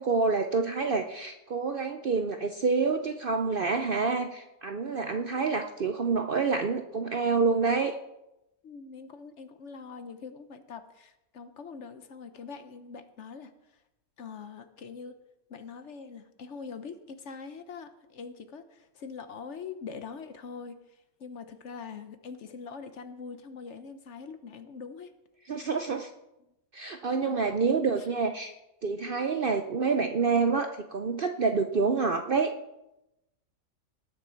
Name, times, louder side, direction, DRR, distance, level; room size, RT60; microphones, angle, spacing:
voice 1, 0.0-7.9 25.5-26.1 26.7-28.5 28.8-32.5, right 4 dB, 55° right, 6 dB, 0.6 m, -27 dB
voice 2, 8.6-13.8 14.2-15.1 15.5-25.1 27.1-28.1, left 5 dB, 60° left, 10 dB, 1.0 m, -43 dB
19.0 x 6.7 x 4.4 m, 0.92 s
omnidirectional pair, 1.5 m